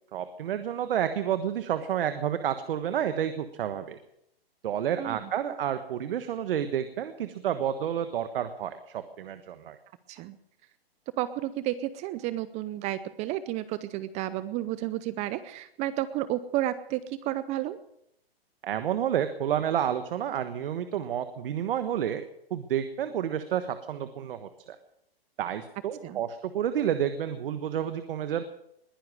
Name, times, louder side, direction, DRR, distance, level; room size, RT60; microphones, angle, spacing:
voice 1, 0.1-4.0 4.6-9.8 18.6-22.2 22.5-24.8 25.4-28.4, right 9 dB, 65° right, 10 dB, 1.4 m, -30 dB
voice 2, 5.0-5.3 10.1-10.4 11.2-17.8 26.0-26.2, right 14 dB, 20° right, 15 dB, 0.6 m, -32 dB
21.0 x 10.5 x 6.3 m, 0.77 s
hypercardioid pair, 135°, 31 cm